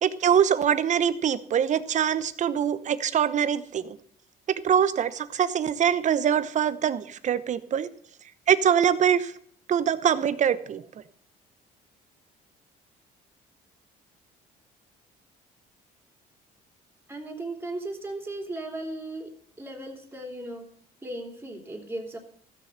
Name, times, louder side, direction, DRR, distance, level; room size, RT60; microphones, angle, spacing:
voice 1, 0.0-4.0 4.5-7.9 8.5-9.3 9.7-10.8, right 8 dB, 45° right, 14 dB, 0.9 m, -23 dB
voice 2, 17.1-19.3 19.6-20.7 21.0-22.2, right 2 dB, 10° right, 2 dB, 3.3 m, -36 dB
15.0 x 6.8 x 8.0 m, 0.62 s
cardioid pair, 110°, 17 cm